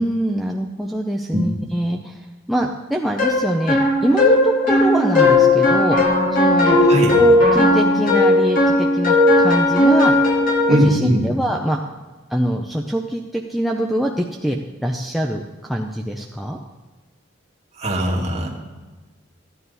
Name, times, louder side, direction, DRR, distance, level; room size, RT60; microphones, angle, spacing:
voice 1, 0.0-6.0 6.3-6.8 7.2-10.3 10.7-11.8 12.3-16.6, right 1 dB, ahead, 0 dB, 0.6 m, -24 dB
sound 1, 3.2-10.9, left 2 dB, 45° left, 2.3 m, -16 dB
voice 2, 6.8-7.2 10.7-11.2 17.8-18.5, equal, 35° right, -2 dB, 2.1 m, -19 dB
15.0 x 10.0 x 4.1 m, 1.3 s
head